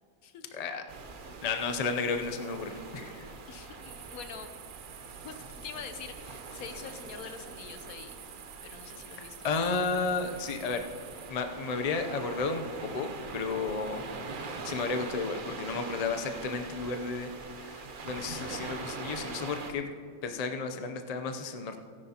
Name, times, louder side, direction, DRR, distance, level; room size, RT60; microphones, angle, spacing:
sound 1, 0.9-19.7, right 4 dB, 45° right, 0.7 m, -43 dB
voice 1, 1.4-3.3 9.4-10.8 11.3-14.0 14.6-17.3 17.6-19.9 20.2-21.8, left 4 dB, 45° left, 6 dB, 0.5 m, -33 dB
voice 2, 3.5-4.5 5.2-8.1 8.6-9.5, left 6 dB, 70° left, 8 dB, 1.2 m, -45 dB
sound 2, 3.8-11.3, right 10 dB, 90° right, 1.2 m, -50 dB
17.0 x 10.0 x 2.9 m, 2.1 s
omnidirectional pair, 1.6 m